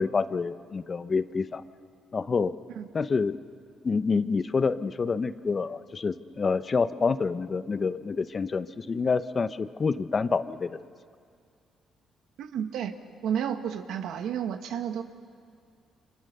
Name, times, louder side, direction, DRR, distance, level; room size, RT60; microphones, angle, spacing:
voice 1, 0.0-1.6 2.1-2.5 2.9-3.3 3.8-10.8, left 4 dB, 35° left, 13 dB, 0.8 m, -27 dB
voice 2, 12.4-12.9 13.2-15.0, right 8 dB, 80° right, 7 dB, 1.4 m, -31 dB
30.0 x 25.5 x 6.8 m, 2.2 s
cardioid pair, 90°, 0 cm